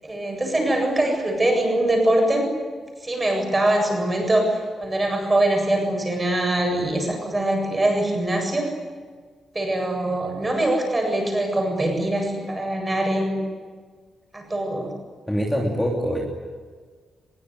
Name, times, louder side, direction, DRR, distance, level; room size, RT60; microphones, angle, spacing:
voice 1, 0.0-2.5 3.0-8.7 9.5-13.4 14.3-14.9, right 1 dB, 15° right, 2 dB, 7.9 m, -23 dB
voice 2, 15.3-16.2, equal, 5° left, -2 dB, 3.2 m, -24 dB
23.5 x 22.5 x 9.9 m, 1.5 s
wide cardioid pair, 170°, 0 cm